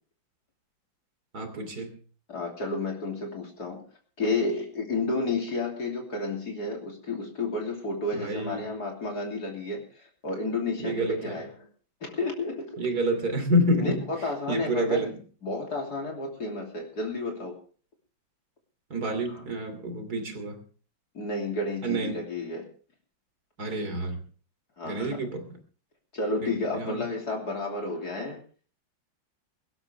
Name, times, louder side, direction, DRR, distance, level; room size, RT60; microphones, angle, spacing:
voice 1, 1.3-2.0 8.1-8.7 10.8-11.4 12.8-15.1 18.9-20.6 21.8-22.1 23.6-24.2 24.8-25.6 26.4-27.1, right 1 dB, 50° right, 7 dB, 3.4 m, -29 dB
voice 2, 2.3-3.8 4.2-11.5 12.0-12.8 13.8-15.1 15.4-17.6 21.1-22.7 24.8-25.2 26.1-28.4, left 3 dB, 55° left, 1 dB, 3.5 m, -31 dB
23.0 x 12.5 x 3.4 m, 0.40 s
omnidirectional pair, 2.1 m